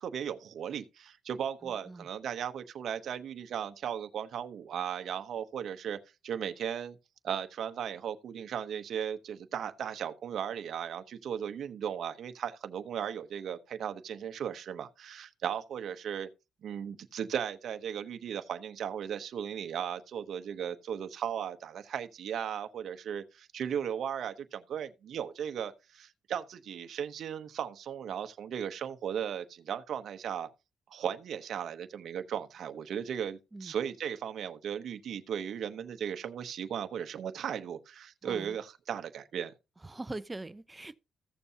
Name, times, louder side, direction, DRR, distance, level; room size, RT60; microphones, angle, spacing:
voice 1, 0.0-7.0 7.2-16.3 16.6-30.5 30.9-39.5, right 8 dB, 65° right, 0.9 m, -36 dB
voice 2, 1.6-2.1 33.5-33.7 38.2-38.6 39.8-40.9, right 2 dB, 15° right, 0.7 m, -42 dB
15.0 x 6.9 x 2.8 m
cardioid pair, 90°, 0 cm